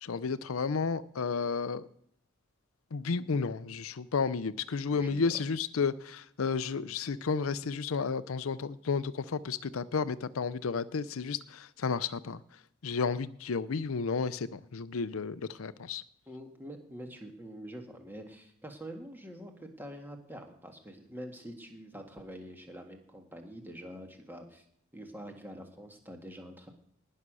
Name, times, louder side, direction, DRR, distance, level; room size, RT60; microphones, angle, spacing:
voice 1, 0.0-1.9 2.9-12.4 12.8-16.0, left 5 dB, 75° left, 0.6 m, -32 dB
voice 2, 4.9-5.3 16.3-24.6 24.9-26.7, equal, 10° right, 1.6 m, -46 dB
19.5 x 6.6 x 6.2 m
head